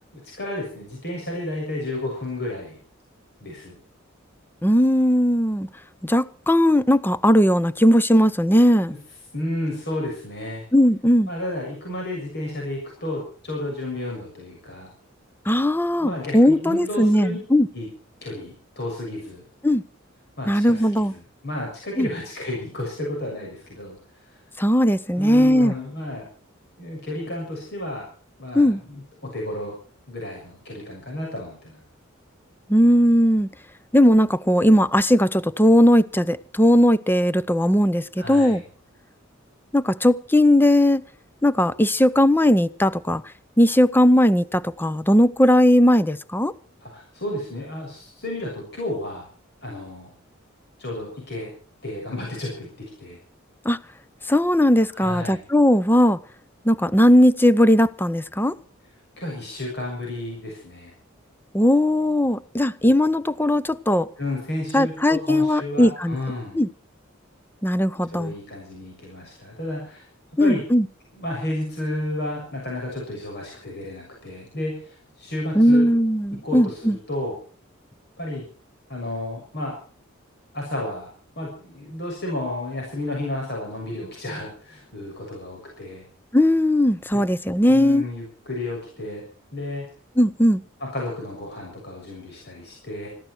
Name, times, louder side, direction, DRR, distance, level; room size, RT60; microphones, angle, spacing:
voice 1, 0.1-2.8 3.4-3.7 9.3-10.6 11.3-14.9 16.0-17.4 17.7-17.9 18.2-19.4 20.4-23.9 24.2-24.4 25.1-26.3 26.8-28.0 28.4-29.0 29.3-29.7 30.1-31.8 38.2-38.6 46.8-49.3 49.6-50.1 50.8-51.5 51.8-52.7 53.0-53.2 54.9-55.4 59.2-60.9 64.2-66.6 68.1-70.1 70.4-70.6 71.2-75.9 76.4-76.8 77.1-77.3 78.2-78.4 78.9-79.7 80.5-81.1 81.4-86.0 87.7-89.2 89.5-89.8 90.8-93.1, left 1 dB, 55° left, 6.7 m, -32 dB
voice 2, 4.6-5.7 6.0-8.9 10.7-11.3 15.5-17.7 19.6-19.8 20.5-21.1 22.0-22.1 24.6-25.7 28.5-28.8 32.7-33.5 33.9-38.6 39.7-41.0 41.4-43.2 43.6-46.5 53.6-53.8 54.3-56.2 56.6-58.5 61.5-64.1 64.7-66.2 66.5-66.7 67.6-68.3 70.4-70.9 75.5-77.0 86.3-88.0 90.2-90.6, equal, 10° left, 0.7 m, -18 dB
21.0 x 15.0 x 4.6 m
head